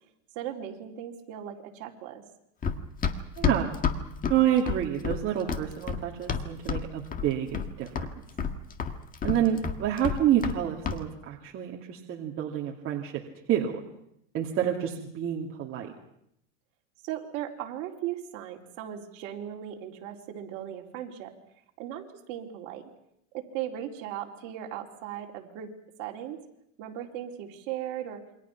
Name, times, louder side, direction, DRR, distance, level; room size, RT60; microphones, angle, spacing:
voice 1, 0.4-2.2 17.0-21.3 21.8-22.8 23.3-25.7 26.0-26.4 26.8-28.2, right 11 dB, 50° right, 1 dB, 4.0 m, -37 dB
Run, 2.6-6.9 7.1-7.7 8.0-10.6 10.8-11.0, left 6 dB, 20° left, 1.8 m, -29 dB
voice 2, 3.4-3.7 4.3-8.1 9.2-13.2 13.5-13.8 14.3-15.9, right 10 dB, 35° right, -1 dB, 2.6 m, -28 dB
28.0 x 24.0 x 6.0 m, 0.77 s
supercardioid pair, 140°, 37 cm